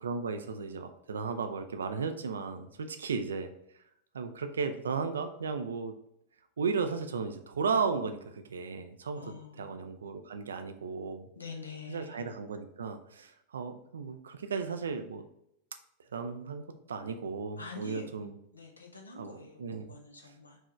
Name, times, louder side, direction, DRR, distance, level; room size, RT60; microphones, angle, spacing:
voice 1, 0.0-3.5 4.1-5.9 6.6-9.2 9.6-11.3 11.9-15.2 16.1-16.6 16.9-18.3 19.2-19.9, right 5 dB, 70° right, 8 dB, 0.4 m, -35 dB
voice 2, 9.1-9.7 11.3-12.3 17.6-20.6, left 4 dB, 80° left, 2 dB, 0.8 m, -46 dB
4.6 x 3.1 x 3.0 m, 0.76 s
figure-of-eight pair, 90°, 0 cm